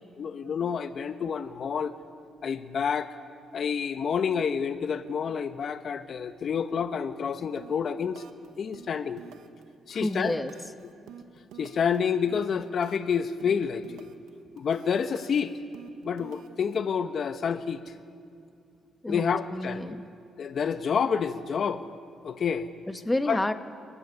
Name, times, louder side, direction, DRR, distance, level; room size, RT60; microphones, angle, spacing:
voice 1, 0.2-1.9 2.4-3.1 3.5-8.2 8.6-9.2 9.9-10.3 11.6-14.1 14.5-15.5 16.0-17.8 19.1-19.8 20.4-21.8 22.2-22.7 23.3-23.4, left 6 dB, 55° left, 10 dB, 1.0 m, -28 dB
sound 1, 7.6-7.9 8.2-8.5 8.7-9.6 9.9-13.1 13.4-14.3 14.6-16.8, right 9 dB, 90° right, 1.5 m, -49 dB
voice 2, 9.9-10.5 19.0-19.2 19.5-20.1 22.9-23.5, left 1 dB, 10° left, 9 dB, 1.2 m, -29 dB
27.5 x 15.5 x 9.7 m, 2.5 s
cardioid pair, 90°, 0 cm